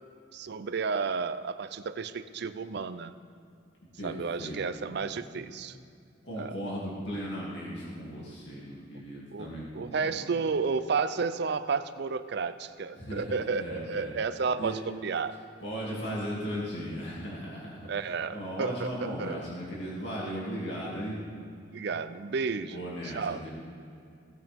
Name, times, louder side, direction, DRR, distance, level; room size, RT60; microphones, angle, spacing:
voice 1, 0.3-3.1 4.0-5.8 6.4-6.6 9.3-15.3 17.8-19.4 21.7-22.8 23.0-23.5, right 5 dB, 60° right, 13 dB, 0.5 m, -32 dB
voice 2, 4.0-4.6 5.0-5.4 6.2-10.2 12.9-14.1 14.6-14.7 15.6-17.9 18.3-21.2 22.7-23.5, equal, 65° left, -6 dB, 2.7 m, -37 dB
17.0 x 8.8 x 3.6 m, 2.6 s
head